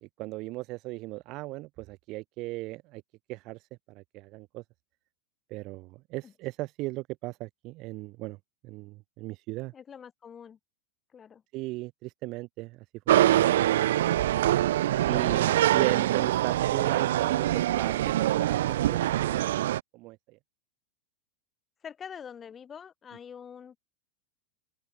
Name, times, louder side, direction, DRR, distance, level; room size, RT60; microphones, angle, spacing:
voice 1, 0.0-3.0 3.3-3.6 3.9-4.6 5.5-8.4 8.6-9.7 11.5-13.5 15.1-19.6 19.9-20.4, right 21 dB, 35° right, 0.7 m, -37 dB
voice 2, 9.7-10.6 11.1-11.4 15.1-15.5 21.8-23.9, left 7 dB, 15° left, 4.9 m, -45 dB
sound 1, 13.1-19.8, right 13 dB, 75° right, 0.6 m, -24 dB
open air
supercardioid pair, 170°, 0 cm